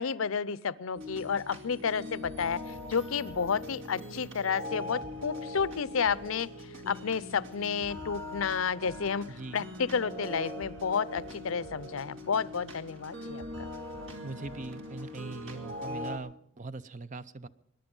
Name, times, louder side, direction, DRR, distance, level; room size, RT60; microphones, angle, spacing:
voice 1, 0.0-2.6 2.9-6.5 6.9-9.3 9.5-13.7, left 6 dB, 80° left, 18 dB, 0.6 m, -31 dB
sound 1, 0.9-16.2, left 1 dB, 65° right, 2.6 m, -41 dB
voice 2, 9.3-9.7 14.2-17.5, right 3 dB, 40° right, 14 dB, 0.6 m, -41 dB
22.5 x 10.5 x 5.4 m, 0.73 s
head